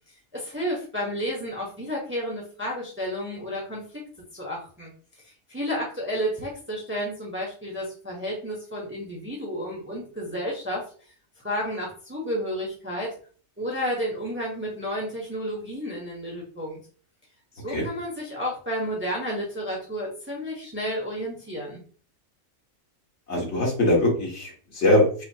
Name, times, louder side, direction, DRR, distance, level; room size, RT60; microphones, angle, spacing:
voice 1, 0.3-3.9 4.3-4.9 5.5-10.8 11.4-13.1 13.6-16.8 17.6-21.8, equal, 10° right, -2 dB, 1.0 m, -31 dB
voice 2, 23.3-25.2, left 1 dB, 60° left, -1 dB, 1.6 m, -22 dB
4.9 x 2.6 x 2.8 m, 0.42 s
omnidirectional pair, 1.4 m